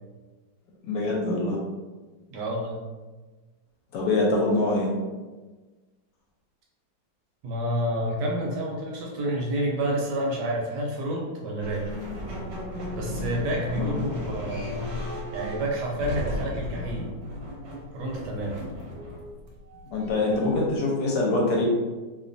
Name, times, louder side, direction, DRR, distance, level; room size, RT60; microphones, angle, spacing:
voice 1, 0.8-1.6 3.9-4.9 13.7-13.9 19.9-21.7, left 2 dB, 75° left, -3 dB, 1.1 m, -24 dB
voice 2, 2.3-2.8 7.4-11.8 12.9-14.7 15.3-17.1 17.9-18.6, right 1 dB, 75° right, -2 dB, 1.1 m, -29 dB
sound 1, 11.6-20.7, left 1 dB, 90° right, 1.4 m, -35 dB
3.0 x 2.2 x 2.5 m, 1.3 s
omnidirectional pair, 2.0 m